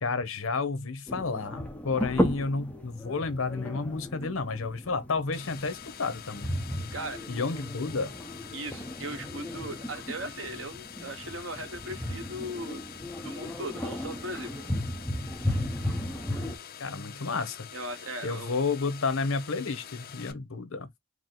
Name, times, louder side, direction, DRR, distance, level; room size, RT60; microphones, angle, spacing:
voice 1, 0.0-6.5 7.3-8.1 16.8-17.7 18.2-20.9, left 4 dB, 75° left, 0.9 m, -31 dB
sound 1, 1.1-16.6, equal, 5° left, 0.8 m, -35 dB
sound 2, 5.3-20.3, left 9 dB, 45° left, 0.5 m, -46 dB
voice 2, 8.5-12.9 13.2-14.5 17.7-18.6, right 1 dB, 65° right, 1.0 m, -38 dB
4.7 x 2.1 x 3.9 m
head